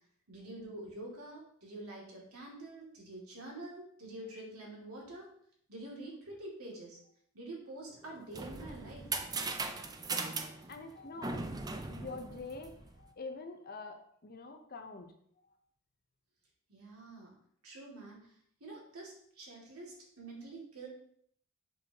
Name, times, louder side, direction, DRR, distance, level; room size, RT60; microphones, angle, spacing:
voice 1, 0.3-5.3 5.7-7.0 7.3-9.1 16.7-17.3 17.6-20.9, right 2 dB, 75° right, -2 dB, 2.4 m, -47 dB
sound 1, 8.0-13.1, right 3 dB, 15° right, 0.4 m, -39 dB
voice 2, 10.7-11.5 11.9-15.1 15.4-15.5, left 3 dB, 45° left, 5 dB, 0.7 m, -45 dB
7.7 x 6.2 x 2.9 m, 0.65 s
head